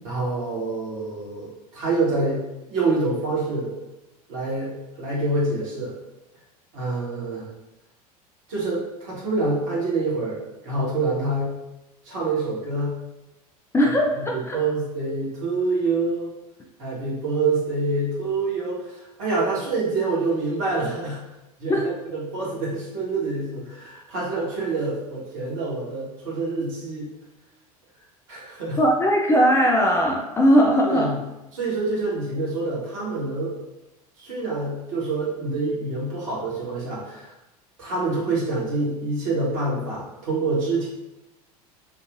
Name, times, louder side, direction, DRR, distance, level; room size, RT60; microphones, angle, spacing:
voice 1, 0.0-3.7 4.3-5.9 6.7-7.5 8.5-11.5 12.0-12.9 13.8-13.9 14.3-16.3 16.8-21.2 21.6-27.0 28.3-28.8 30.8-31.1 31.5-33.5 34.2-37.3 37.8-40.9, right 3 dB, 60° right, -6 dB, 1.4 m, -26 dB
voice 2, 13.7-14.6 21.7-21.8 28.8-31.1, equal, 15° left, -1 dB, 0.4 m, -19 dB
3.5 x 2.5 x 2.5 m, 0.96 s
figure-of-eight pair, 75°, 19 cm